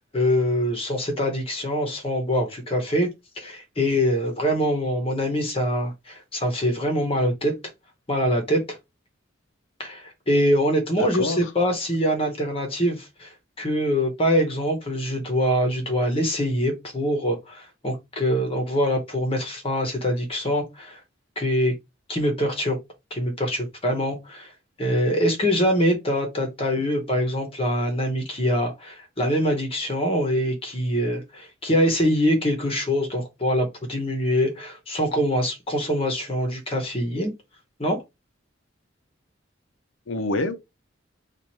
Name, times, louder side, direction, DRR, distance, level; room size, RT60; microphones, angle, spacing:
voice 1, 0.0-3.1 3.4-7.5 8.1-8.8 9.8-21.0 21.4-21.7 22.1-22.8 23.1-24.5 24.8-37.3 37.8-38.0, equal, 30° left, 0.9 m, -24 dB
voice 2, 11.0-11.5 40.1-40.5, left 2 dB, 75° left, 0.6 m, -27 dB
3.0 x 2.5 x 4.1 m
head